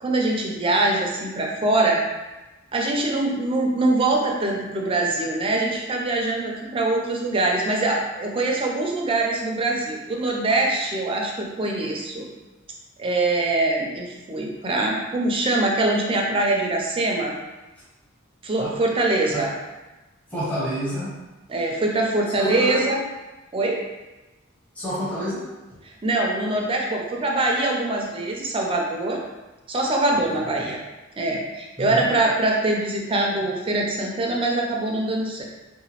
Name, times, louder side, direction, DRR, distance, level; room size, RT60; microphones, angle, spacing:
voice 1, 0.0-2.0 2.7-12.3 13.0-17.4 18.4-19.5 21.5-23.0 23.5-23.8 26.0-29.2 29.7-30.8 31.2-35.4, right 2 dB, 25° right, 0 dB, 0.4 m, -23 dB
voice 2, 20.3-21.1 22.4-22.9 24.7-25.5 30.2-30.8 31.8-32.1, equal, 10° left, -10 dB, 0.7 m, -29 dB
2.8 x 2.2 x 2.8 m, 1.1 s
head